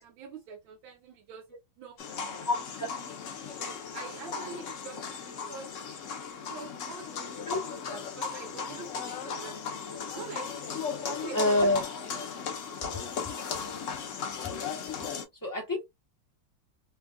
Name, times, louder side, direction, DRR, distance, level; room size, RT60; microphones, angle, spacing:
voice 1, 0.0-1.5 1.8-2.4 3.6-5.0 5.5-5.7 6.5-7.4 7.9-9.8 10.1-10.5 11.0-12.3, right 5 dB, 80° right, 1.4 m, -45 dB
sound 1, 2.0-15.3, left 6 dB, 70° left, 0.7 m, -37 dB
voice 2, 2.5-2.9 7.5-7.6 11.3-11.8 14.4-14.8 15.4-15.8, left 2 dB, 20° left, 0.5 m, -27 dB
3.4 x 2.3 x 2.2 m
omnidirectional pair, 2.2 m